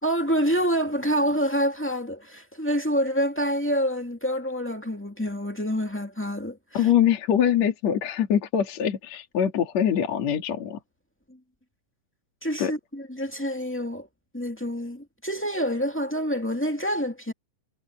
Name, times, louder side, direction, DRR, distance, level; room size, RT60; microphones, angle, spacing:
voice 1, 0.0-6.9 12.4-14.1 14.3-17.3, equal, 10° left, 0.7 m, -27 dB
voice 2, 6.7-10.8 12.6-12.7, left 9 dB, 50° left, 3.3 m, -23 dB
omnidirectional pair, 4.0 m